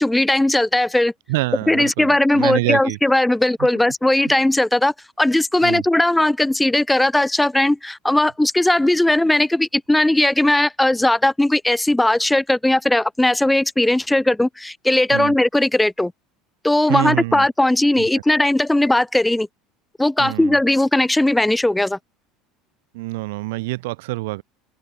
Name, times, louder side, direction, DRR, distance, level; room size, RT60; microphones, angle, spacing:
voice 1, 0.0-1.1 1.7-16.1 16.6-19.5 20.0-22.0, left 1 dB, 5° left, 0.6 m, -18 dB
voice 2, 1.3-3.0 5.6-5.8 15.1-15.3 16.9-17.5 18.0-18.1 20.2-20.6 22.9-24.4, right 22 dB, 85° right, 1.3 m, -26 dB
open air
cardioid pair, 155°, 0 cm